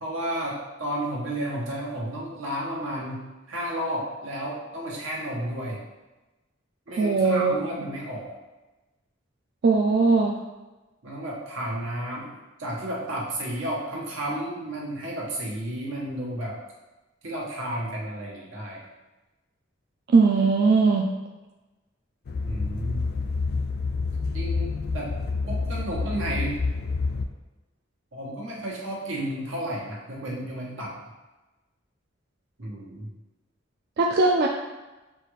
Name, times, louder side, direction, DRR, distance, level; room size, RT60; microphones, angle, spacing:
voice 1, 0.0-5.8 6.9-8.4 11.0-12.3 12.6-16.6 17.2-18.8 22.4-23.0 24.3-25.2 25.5-26.5 28.1-31.0 32.6-33.1, right 1 dB, 90° right, -4 dB, 1.2 m, -32 dB
voice 2, 7.0-7.6 9.6-10.4 20.1-21.2 34.0-34.5, right 4 dB, 55° right, 1 dB, 0.4 m, -20 dB
sound 1, 22.3-27.3, left 4 dB, 55° left, 0.4 m, -28 dB
6.8 x 2.4 x 3.1 m, 1.1 s
head